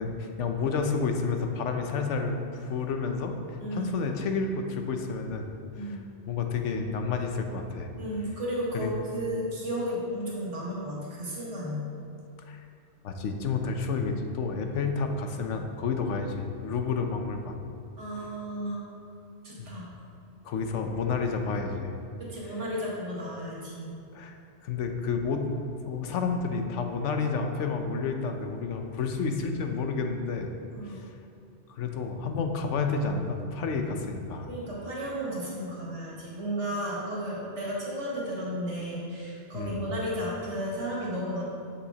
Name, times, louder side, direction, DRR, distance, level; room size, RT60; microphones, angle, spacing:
voice 1, 0.0-5.5 6.3-7.9 8.7-8.9 12.5-12.6 13.0-17.6 19.6-19.7 20.4-21.9 24.1-24.4 24.6-25.5 25.9-30.5 30.9-31.1 31.7-34.5 39.5-39.8, left 4 dB, 90° left, 5 dB, 1.0 m, -30 dB
voice 2, 3.6-3.9 5.7-6.0 8.0-11.8 18.0-18.8 19.4-19.9 22.2-23.9 30.7-31.0 34.5-41.4, equal, 85° right, -5 dB, 1.9 m, -33 dB
7.1 x 6.9 x 2.8 m, 2.6 s
omnidirectional pair, 1.2 m